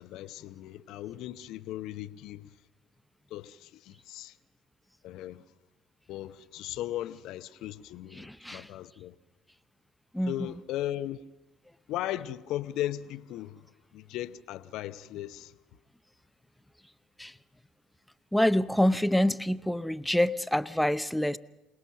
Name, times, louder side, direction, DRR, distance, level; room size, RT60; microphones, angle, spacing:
voice 1, 0.0-2.5 3.3-4.3 5.0-5.4 6.1-9.1 10.3-11.2 11.9-13.6 13.9-15.5, left 13 dB, 60° left, 0.8 m, -37 dB
voice 2, 8.1-8.7 10.1-10.4 17.2-17.3 18.3-21.4, left 1 dB, 5° left, 0.7 m, -26 dB
27.0 x 19.5 x 6.3 m
figure-of-eight pair, 55°, 0 cm